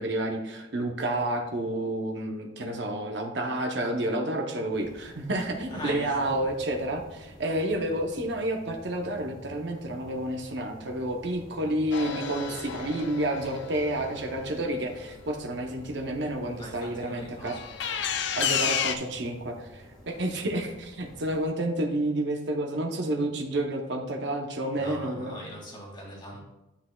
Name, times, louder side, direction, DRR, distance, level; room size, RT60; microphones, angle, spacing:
voice 1, 0.0-17.8 18.4-25.4, right 1 dB, 60° right, 2 dB, 0.7 m, -30 dB
sound 1, 4.7-21.5, equal, 40° right, 2.4 m, -50 dB
voice 2, 5.7-6.4 16.5-17.6 24.7-26.4, equal, 25° left, -3 dB, 2.0 m, -41 dB
sound 2, 11.9-15.6 17.5-19.0, left 7 dB, 65° left, 0.5 m, -32 dB
9.9 x 5.9 x 2.2 m, 0.97 s
head